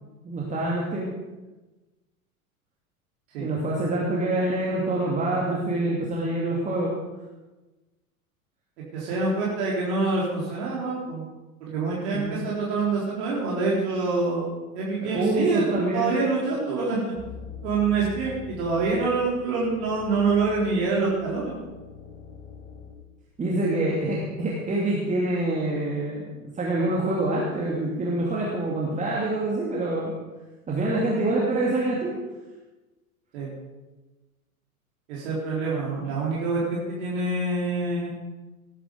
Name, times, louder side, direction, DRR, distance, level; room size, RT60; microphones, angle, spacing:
voice 1, 0.2-1.1 3.4-6.9 11.9-12.4 15.0-16.1 23.4-30.1 30.7-32.1 36.0-36.1, right 2 dB, 15° right, -4 dB, 2.7 m, -26 dB
voice 2, 8.9-11.2 11.6-14.5 14.7-17.1 17.6-21.6 33.3-33.5 35.1-38.1, right 3 dB, 50° right, -5 dB, 4.0 m, -26 dB
sound 1, 17.1-22.9, left 6 dB, 55° left, 3.9 m, -43 dB
19.0 x 10.0 x 5.2 m, 1.2 s
figure-of-eight pair, 90°, 44 cm